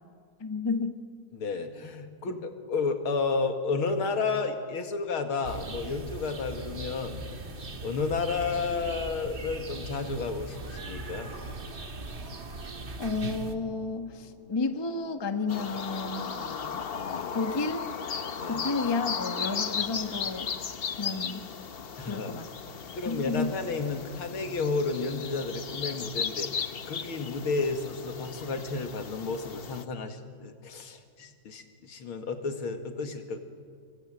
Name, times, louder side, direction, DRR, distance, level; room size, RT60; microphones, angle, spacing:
voice 1, 0.4-1.0 2.3-2.4 13.0-16.8 17.3-17.9 18.5-20.5 21.0-21.4 22.0-22.5 23.0-23.5, left 3 dB, 15° left, 8 dB, 1.0 m, -31 dB
voice 2, 1.3-7.3 7.8-11.4 16.9-17.3 18.4-18.6 22.0-22.3 22.9-33.4, left 4 dB, 80° left, 6 dB, 2.8 m, -32 dB
sound 1, 5.4-13.6, right 2 dB, 30° right, 1.4 m, -40 dB
Cat, 10.4-15.1, right 3 dB, 70° right, 4.7 m, -50 dB
sound 2, 15.5-29.8, left 6 dB, 50° left, 0.7 m, -36 dB
27.0 x 23.0 x 9.0 m, 2.3 s
omnidirectional pair, 2.3 m